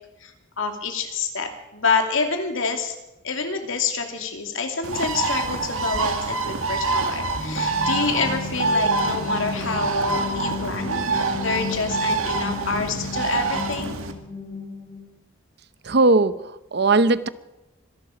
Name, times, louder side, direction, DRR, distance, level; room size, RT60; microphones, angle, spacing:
voice 1, 0.2-2.9 3.2-14.0, left 4 dB, 75° left, 2.7 m, -27 dB
Bird, 4.8-14.1, right 3 dB, 90° right, 1.8 m, -26 dB
sound 1, 7.4-15.1, left 4 dB, 30° left, 1.6 m, -34 dB
voice 2, 15.8-17.3, right 3 dB, 50° right, 0.7 m, -19 dB
25.0 x 11.5 x 5.1 m
head